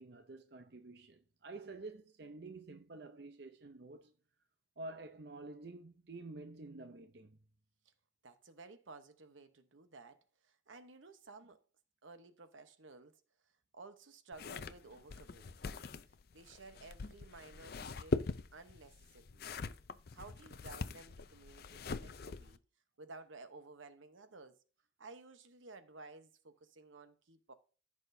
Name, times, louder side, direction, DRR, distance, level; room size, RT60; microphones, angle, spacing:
voice 1, 0.0-4.1 4.8-7.4, right 2 dB, 55° right, 0.6 m, -49 dB
voice 2, 8.2-11.6 12.0-13.2 13.7-15.9 16.3-19.5 20.1-22.6 23.0-24.6 25.0-27.5, right 3 dB, 85° right, 1.0 m, -55 dB
sound 1, 14.3-22.6, left 3 dB, 50° left, 0.5 m, -42 dB
14.5 x 6.0 x 2.7 m
head